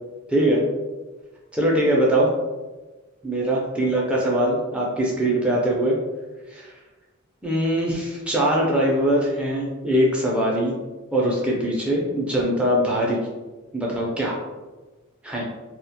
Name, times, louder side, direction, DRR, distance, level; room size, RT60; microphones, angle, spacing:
voice 1, 0.3-0.6 1.5-2.3 3.2-6.0 6.5-6.7 7.4-10.7 11.1-13.2 13.7-14.4 15.2-15.4, right 1 dB, 5° right, -4 dB, 0.4 m, -22 dB
2.3 x 2.1 x 2.7 m, 1.2 s
head